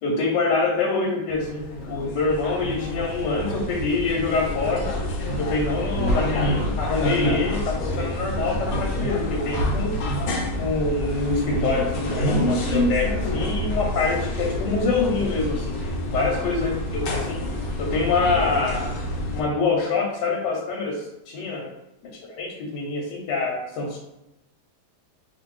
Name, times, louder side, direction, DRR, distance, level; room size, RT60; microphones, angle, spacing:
voice 1, 0.0-4.9 5.4-10.0 10.6-15.7 16.1-17.4 17.8-18.9 19.3-21.7 22.0-24.0, left 3 dB, 90° left, 0 dB, 1.2 m, -25 dB
sound 1, 1.3-19.4, left 1 dB, 70° left, 1.0 m, -27 dB
2.5 x 2.5 x 3.1 m, 0.89 s
omnidirectional pair, 1.8 m